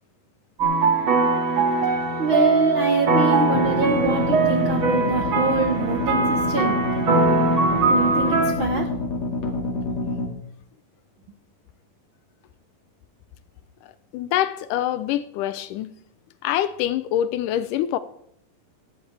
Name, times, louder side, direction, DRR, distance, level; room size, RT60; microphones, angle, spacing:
sound 1, 0.6-8.5, right 3 dB, 40° right, 2.5 m, -21 dB
voice 1, 2.2-6.8 7.9-8.9, right 4 dB, 65° right, 1.2 m, -25 dB
sound 2, 3.5-10.3, left 2 dB, 50° left, 3.0 m, -27 dB
voice 2, 14.1-15.9 16.4-18.0, left 12 dB, 80° left, 2.0 m, -25 dB
17.5 x 13.5 x 3.3 m
omnidirectional pair, 3.9 m